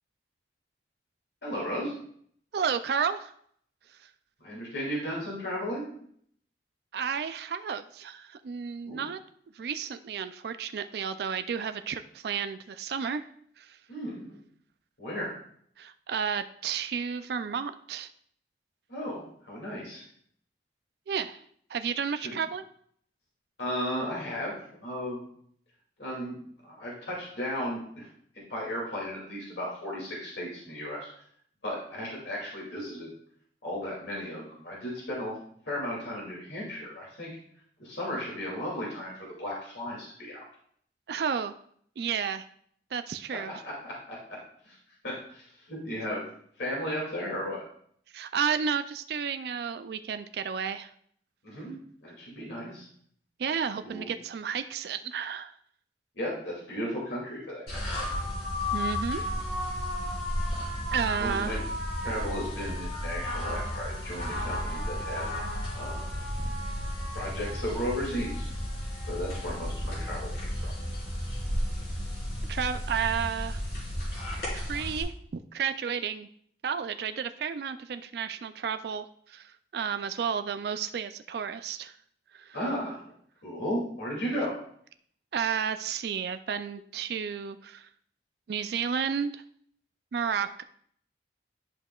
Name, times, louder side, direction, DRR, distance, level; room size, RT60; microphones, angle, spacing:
voice 1, 1.4-1.9 4.4-5.9 8.8-9.0 13.9-14.4 15.0-15.4 18.9-20.0 22.1-22.4 23.6-24.5 24.8-25.2 26.0-26.4 26.6-28.1 28.3-31.1 31.6-33.1 33.6-35.3 35.6-37.3 37.8-40.4 43.3-44.4 44.6-44.8 45.0-46.2 46.6-47.6 51.4-52.9 53.8-54.1 56.1-58.1 61.2-61.6 62.0-65.3 65.7-66.2 67.1-68.5 69.1-70.7 82.5-83.0 83.4-84.6, equal, 80° left, -5 dB, 2.5 m, -35 dB
voice 2, 2.5-3.3 6.9-9.2 9.6-13.2 13.6-13.8 15.8-18.1 21.1-21.4 21.7-22.6 41.1-41.5 42.0-42.4 42.9-43.5 48.1-50.9 53.4-55.5 58.7-59.2 60.9-61.6 72.5-73.6 74.5-75.1 75.5-76.3 76.6-81.9 82.3-82.6 85.3-87.9 88.5-89.4 90.1-90.6, right 7 dB, 60° right, 10 dB, 0.3 m, -32 dB
sound 1, 57.7-75.0, left 1 dB, 60° left, 3.3 m, -33 dB
11.0 x 5.5 x 2.3 m, 0.63 s
head